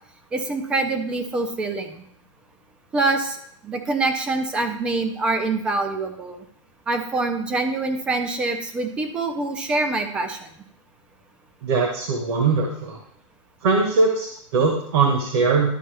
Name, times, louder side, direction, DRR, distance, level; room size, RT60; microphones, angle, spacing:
voice 1, 0.3-2.0 2.9-6.4 6.9-10.5, right 3 dB, 5° right, 7 dB, 0.4 m, -25 dB
voice 2, 11.6-13.0 13.6-15.7, right 4 dB, 50° right, 1 dB, 1.4 m, -21 dB
12.5 x 4.3 x 3.4 m, 0.66 s
hypercardioid pair, 170°, 17 cm